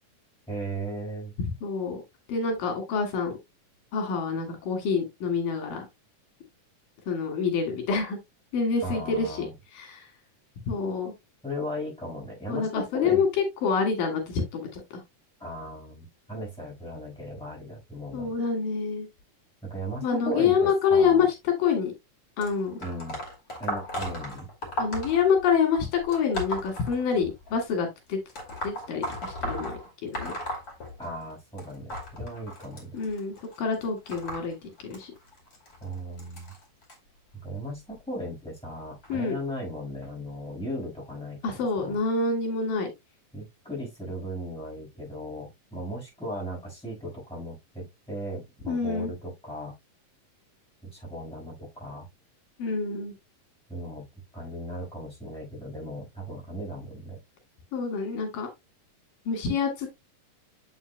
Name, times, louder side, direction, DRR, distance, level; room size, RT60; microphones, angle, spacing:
voice 1, 0.5-1.3 8.8-9.5 11.4-13.2 15.4-18.3 19.6-21.3 22.8-23.2 23.6-24.5 31.0-33.0 35.8-36.5 37.4-42.0 43.3-49.8 50.8-52.1 53.7-54.0 54.3-57.2, equal, ahead, 4.9 m, -37 dB
voice 2, 1.6-2.0 2.3-3.4 3.9-5.8 7.1-8.2 8.5-9.5 9.7-10.1 10.7-11.1 12.5-14.8 18.1-19.1 20.0-21.9 22.4-22.8 24.8-28.2 28.6-30.3 32.9-34.5 34.8-35.1 39.1-39.4 41.4-42.9 48.7-49.1 52.6-53.1 57.7-58.5 59.3-59.9, left 5 dB, 85° left, 3.6 m, -27 dB
sound 1, 22.4-27.5 28.3-31.3 31.6-36.9 37.7-38.0 39.0-39.1 40.0-40.1 40.8-40.9, equal, 30° left, 2.3 m, -36 dB
7.7 x 7.1 x 2.2 m
omnidirectional pair, 3.8 m